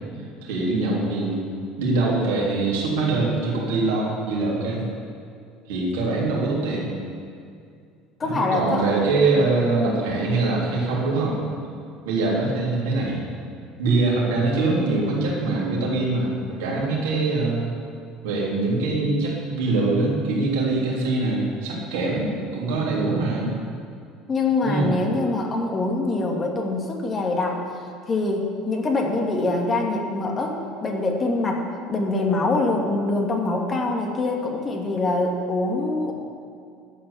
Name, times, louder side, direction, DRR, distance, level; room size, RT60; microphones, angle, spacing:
voice 1, 0.4-1.4 1.8-4.8 5.7-6.8 8.2-11.4 12.0-13.2 13.8-17.7 18.2-23.5 24.6-24.9, right 3 dB, 70° right, -4 dB, 3.4 m, -23 dB
voice 2, 8.2-8.9 24.3-27.6 28.1-31.6 31.9-36.1, left 2 dB, 30° left, 1 dB, 2.3 m, -24 dB
12.0 x 8.9 x 7.1 m, 2.3 s
figure-of-eight pair, 65°, 0 cm